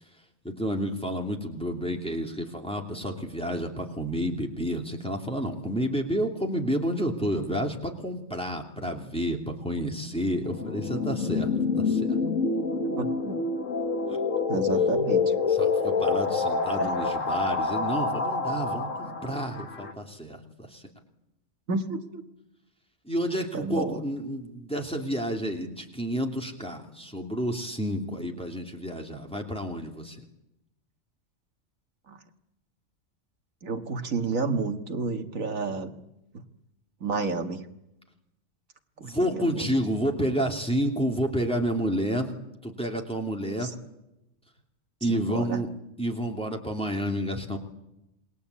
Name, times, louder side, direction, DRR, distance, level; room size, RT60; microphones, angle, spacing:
voice 1, 0.4-12.2 14.1-14.2 15.6-20.8 23.0-30.2 39.0-42.3 42.6-43.7 45.0-45.7 46.0-47.6, equal, 5° left, 1 dB, 3.0 m, -30 dB
sound 1, 10.4-19.9, left 4 dB, 70° left, 2.0 m, -27 dB
voice 2, 13.0-13.4 14.5-15.3 16.8-16.9 21.7-22.2 23.5-24.0 32.1-32.2 33.6-35.9 36.3-36.4 37.0-37.7 39.0-39.7 43.6-43.7 45.1-45.6, right 3 dB, 75° right, 5 dB, 2.1 m, -31 dB
28.0 x 21.0 x 8.5 m, 0.89 s
omnidirectional pair, 1.4 m